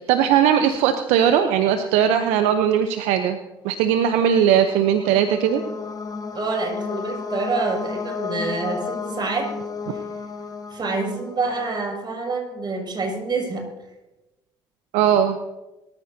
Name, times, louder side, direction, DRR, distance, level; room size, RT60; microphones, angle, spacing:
voice 1, 0.1-3.4 3.6-5.6 14.9-15.4, right 9 dB, 75° right, 8 dB, 0.8 m, -19 dB
sound 1, 4.3-12.0, left 5 dB, 30° left, 1.4 m, -33 dB
voice 2, 6.3-9.5 10.7-13.6, right 3 dB, 40° right, 1 dB, 6.3 m, -27 dB
22.5 x 14.0 x 2.8 m, 1.0 s
hypercardioid pair, 55°, 12 cm